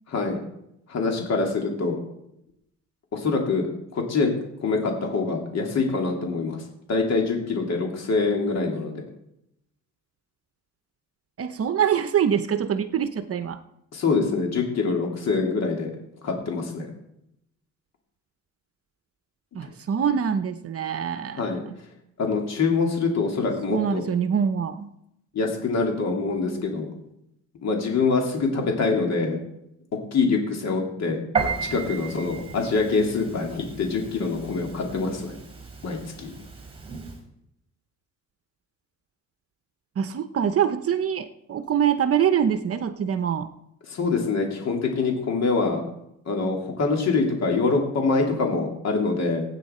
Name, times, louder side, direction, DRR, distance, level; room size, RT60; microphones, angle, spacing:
voice 1, 0.1-0.4 0.9-2.0 3.1-3.7 3.9-4.3 4.6-6.6 6.9-8.9 13.9-15.9 16.2-16.9 19.6-19.7 21.4-21.6 22.2-24.0 25.3-26.9 27.6-29.4 29.9-31.2 31.7-35.4 35.8-36.3 43.8-45.8 46.3-49.4, left 4 dB, 60° left, 1 dB, 2.6 m, -25 dB
voice 2, 11.4-13.6 19.5-21.4 23.7-24.9 31.3-31.5 40.0-43.5, right 8 dB, 50° right, 11 dB, 0.8 m, -24 dB
Piano, 31.3-37.2, right 5 dB, 20° right, 4.8 m, -34 dB
17.0 x 9.1 x 4.3 m, 0.81 s
cardioid pair, 90°, 30 cm